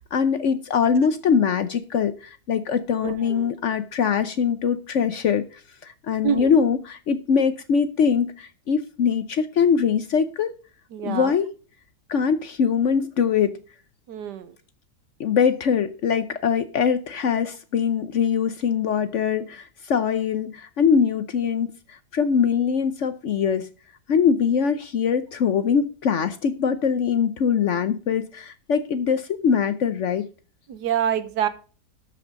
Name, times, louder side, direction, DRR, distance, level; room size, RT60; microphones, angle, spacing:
voice 1, 0.1-5.4 5.8-10.5 11.0-11.5 12.1-13.6 15.2-23.7 24.1-30.3, left 6 dB, 60° left, 12 dB, 0.8 m, -22 dB
voice 2, 3.0-3.5 6.2-6.5 10.9-11.3 14.1-14.5 30.7-31.5, right 9 dB, 80° right, 13 dB, 1.5 m, -26 dB
12.5 x 5.3 x 5.1 m, 0.37 s
omnidirectional pair, 1.8 m